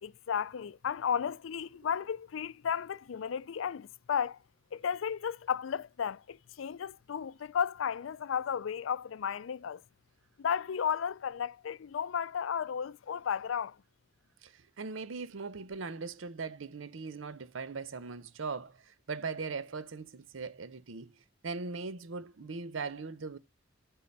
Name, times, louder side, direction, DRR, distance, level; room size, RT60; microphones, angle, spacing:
voice 1, 0.0-4.4 4.7-9.8 10.4-13.8, left 7 dB, 80° left, 0.4 m, -34 dB
voice 2, 14.4-21.1 21.4-23.4, right 4 dB, 80° right, 0.7 m, -40 dB
8.5 x 3.7 x 5.3 m
head